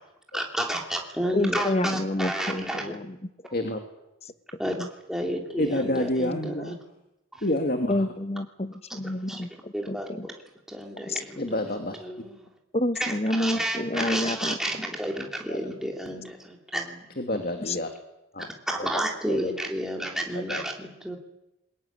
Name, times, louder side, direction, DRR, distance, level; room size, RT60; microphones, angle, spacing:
voice 1, 0.3-2.9 4.6-4.7 5.1-6.7 7.3-7.4 9.3-9.4 9.7-10.3 10.7-11.6 12.0-12.5 13.0-17.1 18.7-21.2, right 1 dB, ahead, 1 dB, 3.1 m, -31 dB
voice 2, 1.3-3.2 4.8-4.9 7.9-9.5 9.9-10.3 11.1-11.2 12.7-14.6 17.7-17.8, left 1 dB, 30° left, 12 dB, 1.1 m, -28 dB
voice 3, 5.6-6.7 7.4-8.0 11.4-12.0 13.5-13.6 14.1-14.2 15.5-15.6 17.2-17.9 18.3-18.5 18.8-19.0 19.3-19.5 20.2-20.6, left 1 dB, 45° left, 5 dB, 2.2 m, -29 dB
22.0 x 20.0 x 9.8 m, 0.91 s
head